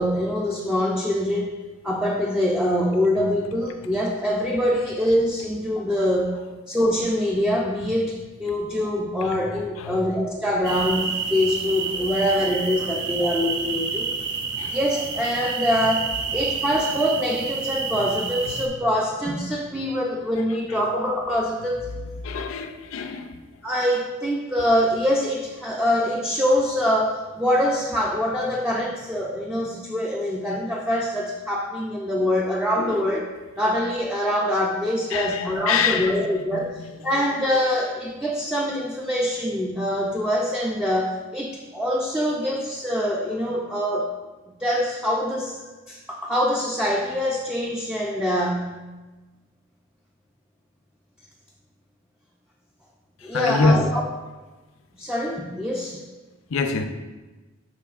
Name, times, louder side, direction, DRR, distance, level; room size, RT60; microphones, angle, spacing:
voice 1, 0.0-1.6 1.8-6.4 6.7-14.1 14.7-21.9 23.6-33.2 33.6-44.1 44.6-45.6 45.9-48.8 53.2-54.0 55.0-56.0, equal, 5° right, 0.4 m, -24 dB
sound 1, 10.6-18.7, right 5 dB, 55° right, 0.6 m, -29 dB
voice 2, 22.2-23.4 32.8-33.0 35.1-37.2 53.3-53.9 56.5-56.8, left 4 dB, 65° left, 0.5 m, -26 dB
11.0 x 4.1 x 2.4 m
head